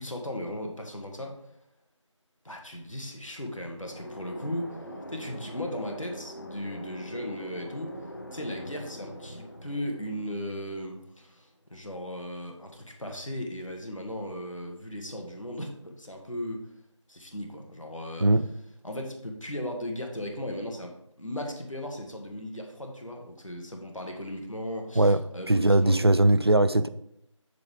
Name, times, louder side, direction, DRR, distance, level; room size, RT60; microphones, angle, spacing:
voice 1, 0.0-1.4 2.4-16.7 17.1-18.3 18.8-26.1, left 1 dB, 85° left, 1.9 m, -37 dB
sound 1, 3.7-11.4, equal, 45° left, 0.9 m, -43 dB
voice 2, 25.0-26.9, right 1 dB, 50° right, 0.4 m, -21 dB
7.0 x 6.6 x 3.5 m
figure-of-eight pair, 175°, 16 cm